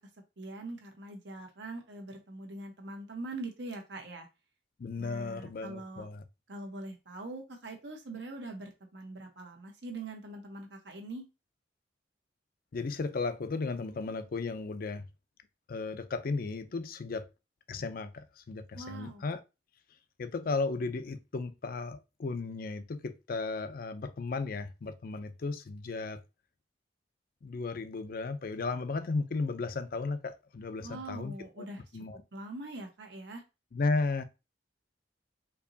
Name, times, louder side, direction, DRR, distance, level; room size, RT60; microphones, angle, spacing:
voice 1, 0.4-4.3 5.0-6.1 6.5-11.2 18.7-19.2 30.8-31.8 32.3-33.4, right 2 dB, 80° right, 1.1 m, -43 dB
voice 2, 4.8-6.2 12.7-15.0 15.7-17.3 17.7-19.4 20.2-26.2 27.4-31.7 31.9-32.2 33.7-34.2, left 3 dB, 55° left, 0.5 m, -35 dB
4.5 x 2.9 x 2.7 m
head